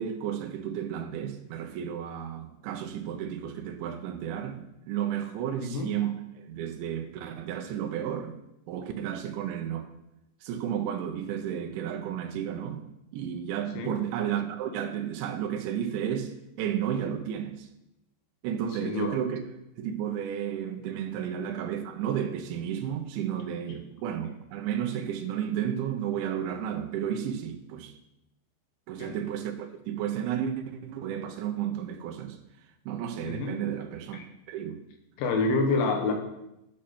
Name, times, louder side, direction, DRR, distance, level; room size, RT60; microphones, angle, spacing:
voice 1, 0.0-8.4 8.7-9.9 10.4-12.8 13.1-17.7 18.4-19.4 19.8-28.0 28.9-32.4 32.9-34.2 34.5-34.8, right 9 dB, 85° right, 3.2 m, -32 dB
voice 2, 5.6-6.1 13.8-14.0 18.8-19.2 29.0-29.2 33.3-33.6 34.1-34.2 35.2-36.1, left 3 dB, 90° left, 3.8 m, -28 dB
14.5 x 6.4 x 4.3 m
omnidirectional pair, 5.2 m